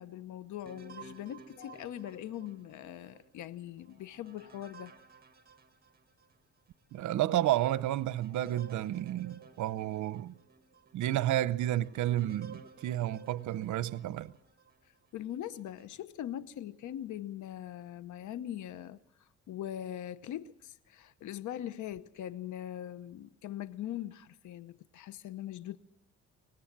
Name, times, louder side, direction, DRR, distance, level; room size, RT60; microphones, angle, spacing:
voice 1, 0.0-4.9 15.1-19.0 19.5-25.8, left 11 dB, 75° left, 0.9 m, -41 dB
sound 1, 0.6-6.4 6.9-7.0 7.6-14.8 15.4-16.0, right 5 dB, 30° right, 1.9 m, -55 dB
voice 2, 6.9-10.3 10.9-14.3, right 13 dB, 75° right, 0.8 m, -31 dB
24.0 x 19.0 x 7.4 m
cardioid pair, 90°, 30 cm